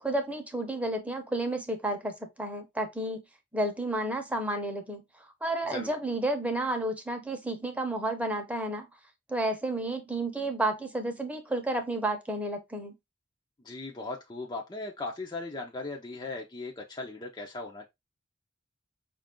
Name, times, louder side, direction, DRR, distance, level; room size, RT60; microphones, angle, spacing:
voice 1, 0.0-3.2 3.5-5.0 5.4-8.9 9.3-12.9, right 1 dB, 5° right, 0.8 m, -31 dB
voice 2, 13.6-17.9, left 3 dB, 25° left, 0.6 m, -38 dB
5.2 x 2.5 x 3.6 m
head